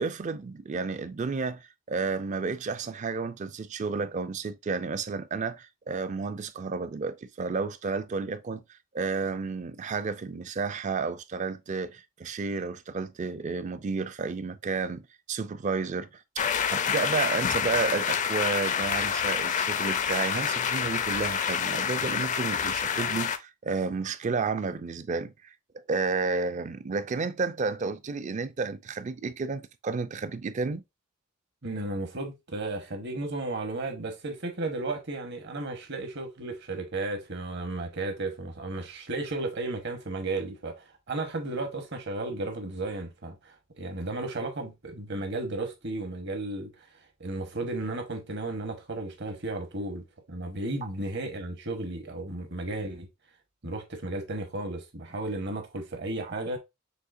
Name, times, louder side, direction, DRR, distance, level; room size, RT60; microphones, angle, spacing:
voice 1, 0.0-8.6 8.9-25.5 25.9-30.8 56.2-56.3, right 4 dB, 40° right, 0.4 m, -31 dB
sound 1, 16.4-23.4, left 7 dB, 40° left, 0.4 m, -28 dB
voice 2, 31.6-46.7 47.2-53.1 53.6-56.6, right 2 dB, 60° right, 1.1 m, -34 dB
6.5 x 2.8 x 2.5 m
head